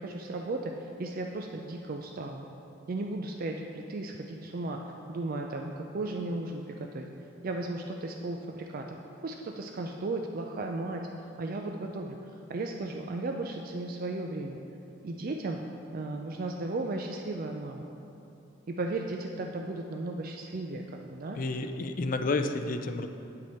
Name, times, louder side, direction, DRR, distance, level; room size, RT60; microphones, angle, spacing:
voice 1, 0.0-2.4 2.9-4.8 5.1-7.1 7.4-9.0 9.2-11.0 11.4-12.2 12.5-14.6 15.0-15.6 15.9-17.9 18.8-21.4, right 2 dB, 45° right, 2 dB, 0.4 m, -35 dB
voice 2, 21.4-23.1, left 2 dB, 45° left, 7 dB, 0.4 m, -30 dB
9.4 x 6.1 x 4.3 m, 2.8 s
head